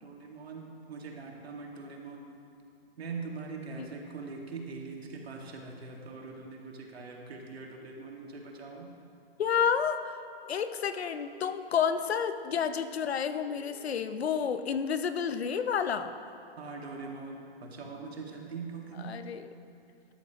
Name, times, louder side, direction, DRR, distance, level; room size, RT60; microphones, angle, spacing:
voice 1, 0.0-2.2 3.0-8.9 16.6-19.2, right 4 dB, 80° right, 0 dB, 2.0 m, -42 dB
voice 2, 9.4-10.2 10.5-16.1 19.0-19.5, left 7 dB, 85° left, 10 dB, 0.8 m, -30 dB
sound 1, 10.4-11.4 13.5-14.5, left 1 dB, 70° left, 1.1 m, -53 dB
12.5 x 12.0 x 3.0 m, 2.6 s
hypercardioid pair, 165°, 31 cm